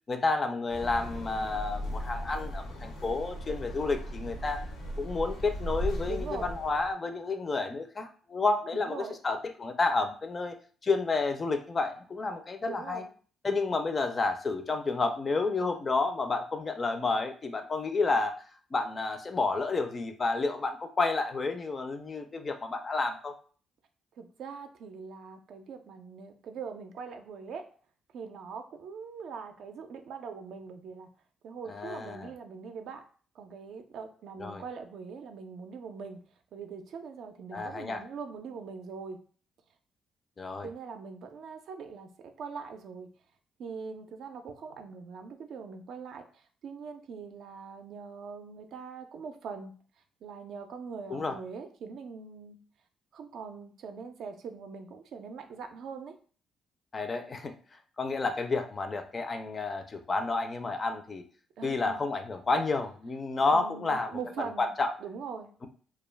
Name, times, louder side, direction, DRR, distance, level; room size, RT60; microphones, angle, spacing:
voice 1, 0.1-4.6 5.0-10.6 10.8-13.0 13.4-18.4 18.7-23.3 31.7-32.3 34.4-34.6 37.5-38.0 40.4-40.7 51.1-51.4 56.9-57.5 58.0-61.2 61.6-64.2 64.6-64.9, left 3 dB, 35° left, 7 dB, 0.4 m, -30 dB
sound 1, 0.7-6.9, equal, 85° left, 0.7 m, -37 dB
voice 2, 6.1-6.5 8.7-9.2 12.6-13.1 24.2-27.6 28.1-31.1 31.4-33.0 33.3-36.2 36.5-39.2 40.6-43.1 43.6-49.7 50.2-52.6 53.1-56.1 61.6-62.0 63.5-64.7 65.0-65.5, right 5 dB, 70° right, 6 dB, 0.4 m, -42 dB
2.3 x 2.2 x 3.2 m, 0.42 s
cardioid pair, 90°, 0 cm